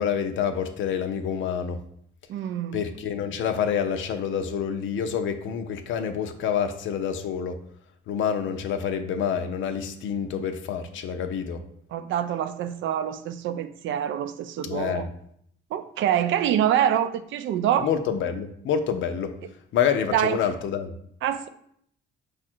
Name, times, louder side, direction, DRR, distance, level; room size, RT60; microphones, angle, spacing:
voice 1, 0.0-1.8 2.7-7.6 8.1-11.6 14.6-15.1 17.8-19.3 19.7-20.9, left 7 dB, 75° left, 8 dB, 0.6 m, -27 dB
voice 2, 2.3-2.8 11.9-15.1 15.7-17.9 20.1-20.4 21.2-21.5, right 10 dB, 75° right, 11 dB, 0.4 m, -25 dB
5.0 x 2.5 x 4.3 m, 0.68 s
cardioid pair, 90°, 20 cm